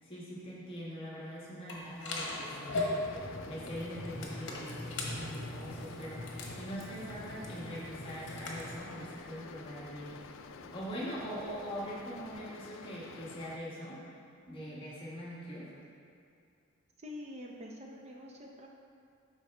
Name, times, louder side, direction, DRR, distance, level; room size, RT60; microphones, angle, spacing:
voice 1, 0.0-2.9 3.4-6.2 6.5-10.2 10.7-14.0 14.5-15.7, equal, 25° left, -7 dB, 1.3 m, -42 dB
sound 1, 1.7-8.8, left 2 dB, 60° left, 1.1 m, -39 dB
sound 2, 2.3-13.6, left 4 dB, 75° left, 0.4 m, -50 dB
sound 3, 3.5-12.3, equal, 70° right, 1.8 m, -57 dB
voice 2, 17.0-18.7, left 1 dB, 30° right, -1 dB, 0.6 m, -46 dB
12.0 x 4.1 x 3.4 m, 2.5 s
head